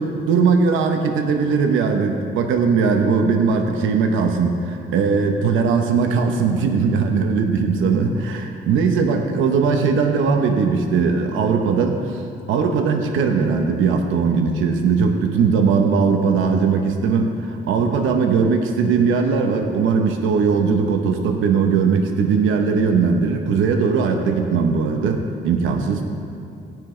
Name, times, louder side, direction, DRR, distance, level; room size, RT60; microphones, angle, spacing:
voice 1, 0.0-12.2 12.5-26.0, right 5 dB, 85° right, 4 dB, 0.9 m, -19 dB
17.0 x 10.5 x 3.2 m, 2.5 s
cardioid pair, 90°, 20 cm